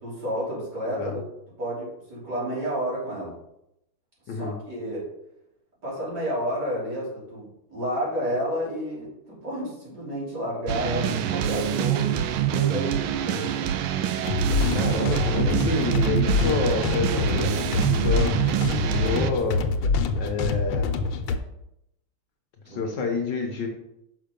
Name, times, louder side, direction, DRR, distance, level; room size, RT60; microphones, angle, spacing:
voice 1, 0.0-1.2 1.6-3.3 4.3-5.1 5.8-13.7 17.1-18.1 22.7-22.8, equal, 50° right, -7 dB, 3.8 m, -31 dB
sound 1, 10.7-19.3, right 10 dB, 80° right, 1.4 m, -26 dB
sound 2, 14.2-21.4, left 4 dB, 85° left, 1.6 m, -25 dB
voice 2, 14.7-17.4 17.8-18.3 18.7-19.6 20.1-20.9 22.7-23.7, left 4 dB, 60° left, 2 dB, 1.5 m, -28 dB
6.5 x 5.6 x 5.2 m, 0.82 s
omnidirectional pair, 2.3 m